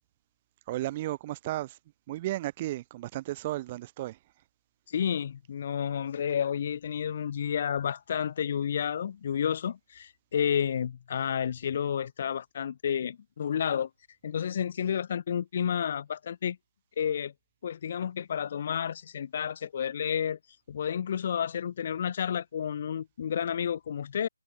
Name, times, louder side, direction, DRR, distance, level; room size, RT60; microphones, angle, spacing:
voice 1, 0.7-1.8 2.1-4.2, right 16 dB, 15° right, 4.8 m, -34 dB
voice 2, 4.9-13.9 14.2-16.6 17.0-17.3 17.6-20.4 20.7-24.3, left 8 dB, 30° left, 1.8 m, -31 dB
figure-of-eight pair, 170°, 0 cm